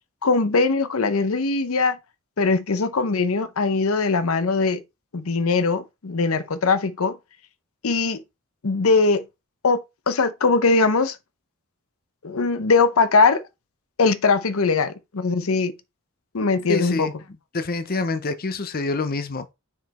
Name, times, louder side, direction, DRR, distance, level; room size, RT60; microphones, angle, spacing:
voice 1, 0.2-2.0 2.4-4.8 5.1-7.2 7.8-8.2 8.6-9.2 9.6-11.2 12.2-13.4 14.0-15.7 16.3-17.1, left 4 dB, 75° left, 0.7 m, -21 dB
voice 2, 16.7-17.1 17.5-19.5, left 3 dB, 45° left, 0.7 m, -26 dB
5.8 x 4.9 x 4.2 m
head